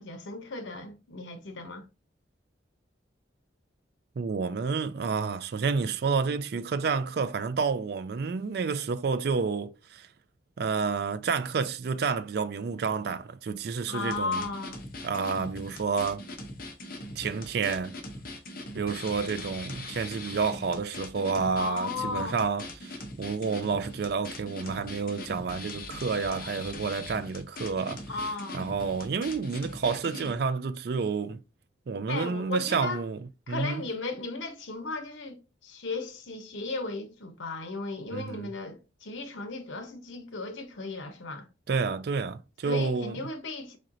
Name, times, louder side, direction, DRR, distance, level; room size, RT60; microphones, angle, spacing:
voice 1, 0.0-1.8 13.9-14.9 21.5-22.4 28.1-28.7 32.1-33.0 33.5-41.5 42.6-43.8, left 3 dB, 80° left, 0.9 m, -35 dB
voice 2, 4.2-10.1 10.6-14.4 15.0-16.2 17.2-18.0 18.7-28.0 28.5-31.4 31.9-33.8 38.1-38.5 41.7-43.2, right 5 dB, 55° right, 0.3 m, -30 dB
sound 1, 14.0-30.3, left 2 dB, 50° left, 0.8 m, -41 dB
4.3 x 3.8 x 2.6 m
head